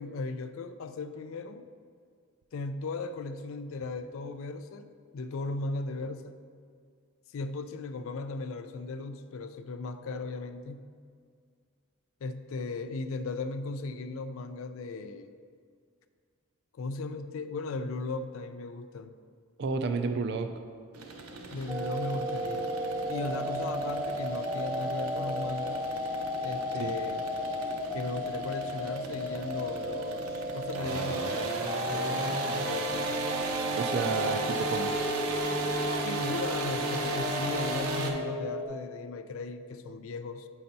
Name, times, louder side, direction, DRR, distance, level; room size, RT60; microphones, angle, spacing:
voice 1, 0.0-1.6 2.5-6.4 7.3-10.8 12.2-15.3 16.7-19.1 21.5-22.7 23.1-25.8 26.4-27.2 27.9-33.3 36.0-40.5, left 3 dB, 65° left, 10 dB, 0.3 m, -37 dB
voice 2, 19.6-20.5 26.8-26.9 33.7-34.9, right 4 dB, 50° right, 7 dB, 0.3 m, -31 dB
sound 1, 20.9-38.1, right 3 dB, 80° right, 0.7 m, -36 dB
sound 2, 21.7-38.6, equal, 20° right, 0.7 m, -34 dB
8.4 x 5.6 x 2.7 m, 2.1 s
head